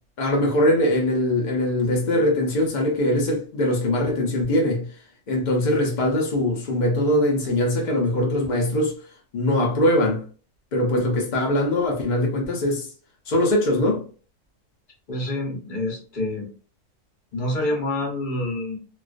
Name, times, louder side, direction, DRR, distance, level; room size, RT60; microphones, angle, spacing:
voice 1, 0.2-4.9 5.3-8.9 9.3-10.2 10.7-12.9 13.3-14.0, left 1 dB, 80° left, 0.4 m, -22 dB
voice 2, 15.1-16.5 17.3-18.8, left 1 dB, 45° left, 0.7 m, -27 dB
2.3 x 2.2 x 2.4 m
omnidirectional pair, 1.6 m